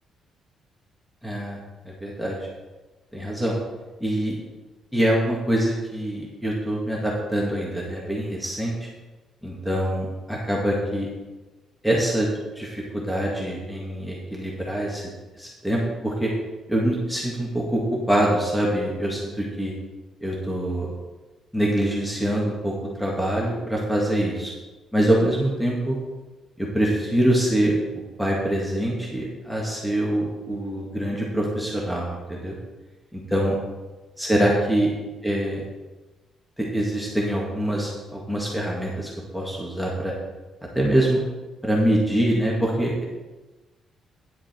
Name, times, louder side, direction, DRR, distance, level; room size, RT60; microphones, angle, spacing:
voice 1, 1.2-1.6 1.9-2.4 3.1-3.6 4.0-4.4 4.9-8.9 9.4-11.1 11.8-12.3 12.6-15.0 15.3-16.3 16.7-17.8 18.1-19.7 20.2-20.9 21.5-24.5 24.9-26.0 26.6-27.8 28.2-32.6 33.1-33.6 34.2-34.9 35.2-35.6 36.6-40.1 40.8-41.2 41.6-43.0, right 1 dB, ahead, -3 dB, 2.0 m, -24 dB
10.0 x 7.2 x 4.5 m, 1.2 s
cardioid pair, 90°, 0 cm